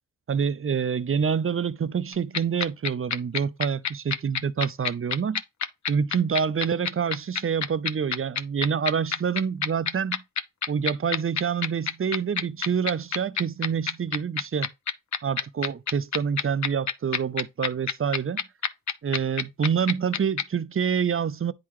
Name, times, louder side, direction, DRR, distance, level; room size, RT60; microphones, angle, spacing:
voice 1, 0.3-5.4 5.9-10.2 10.7-14.7 15.2-18.4 19.0-21.5, right 7 dB, 35° right, 0.5 m, -27 dB
sound 1, 2.1-20.4, left 7 dB, 50° left, 0.7 m, -26 dB
9.7 x 3.8 x 3.0 m
cardioid pair, 65°, 37 cm